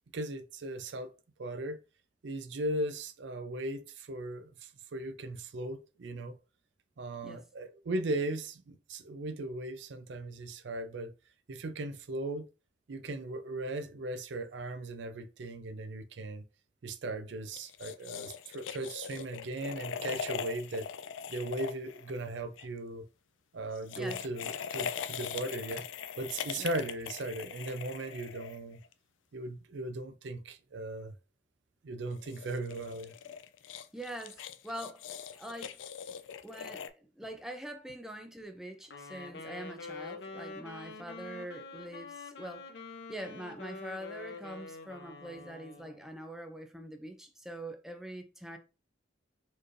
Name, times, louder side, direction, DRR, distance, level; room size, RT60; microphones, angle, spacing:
voice 1, 0.1-1.1 1.4-1.8 2.2-6.4 7.0-11.1 11.5-12.5 12.9-16.4 16.8-20.9 21.3-23.1 23.5-25.9 26.2-28.8 29.3-31.1 31.8-33.1, right 2 dB, 70° right, 0.5 m, -38 dB
sound 1, 17.5-22.7 23.7-28.9 32.1-36.9, left 7 dB, 90° left, 0.4 m, -41 dB
voice 2, 33.7-35.1 35.3-35.8 36.4-42.7 43.1-48.6, right 1 dB, ahead, 0.4 m, -44 dB
Wind instrument woodwind instrument, 38.8-46.1, left 3 dB, 65° left, 0.7 m, -46 dB
4.4 x 3.1 x 2.5 m
head